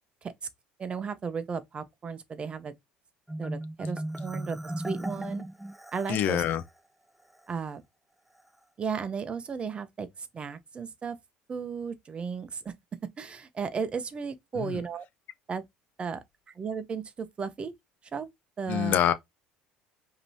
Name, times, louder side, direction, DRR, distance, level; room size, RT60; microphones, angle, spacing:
voice 1, 0.8-2.7 3.4-5.4 5.9-6.4 7.5-7.8 8.8-11.2 11.5-12.7 13.2-15.0 15.5-15.7 16.0-17.7 18.1-18.3 18.6-19.0, right 6 dB, 35° right, 0.8 m, -35 dB
Marimba xylophone, 3.3-6.6, right 1 dB, 5° right, 0.4 m, -36 dB
voice 2, 6.1-6.6 14.6-14.8 18.7-19.1, left 10 dB, 55° left, 0.6 m, -25 dB
5.2 x 2.9 x 2.8 m
supercardioid pair, 90°, 3 cm